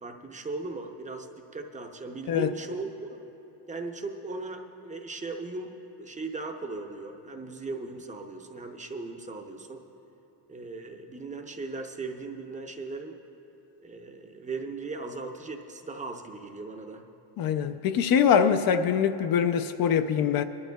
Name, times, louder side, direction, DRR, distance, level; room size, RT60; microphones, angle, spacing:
voice 1, 0.0-2.9 3.7-5.7 6.0-9.8 10.5-13.2 13.8-17.0, right 3 dB, 15° right, 0.6 m, -38 dB
voice 2, 17.4-20.4, left 7 dB, 55° left, 0.5 m, -23 dB
23.5 x 12.0 x 2.3 m
cardioid pair, 135°, 44 cm